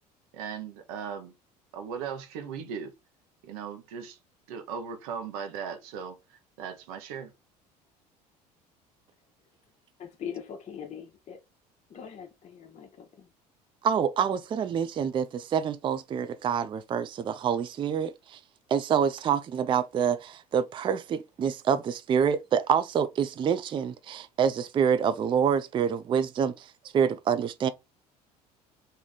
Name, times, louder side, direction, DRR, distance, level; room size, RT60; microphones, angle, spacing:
voice 1, 0.3-1.3 1.7-2.9 3.4-4.2 4.5-6.2 6.6-7.3, right 7 dB, 65° right, 0.8 m, -37 dB
voice 2, 10.0-11.4 11.9-13.3, left 8 dB, 35° left, 0.7 m, -41 dB
voice 3, 13.8-18.4 18.7-26.7 26.9-27.7, right 7 dB, 25° right, 0.4 m, -27 dB
3.5 x 2.6 x 3.9 m
figure-of-eight pair, 60°, 20 cm